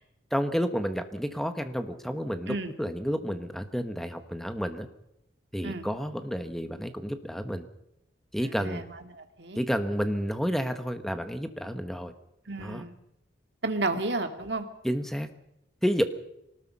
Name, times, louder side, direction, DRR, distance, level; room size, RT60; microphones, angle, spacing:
voice 1, 0.3-4.9 5.5-7.7 8.3-8.8 9.6-12.1 12.6-12.9 14.8-15.3 15.8-16.0, equal, ahead, 8 dB, 1.4 m, -30 dB
voice 2, 8.4-9.6 12.5-13.0 13.6-14.7, right 2 dB, 60° right, 6 dB, 2.2 m, -32 dB
24.0 x 19.5 x 5.6 m, 0.83 s
head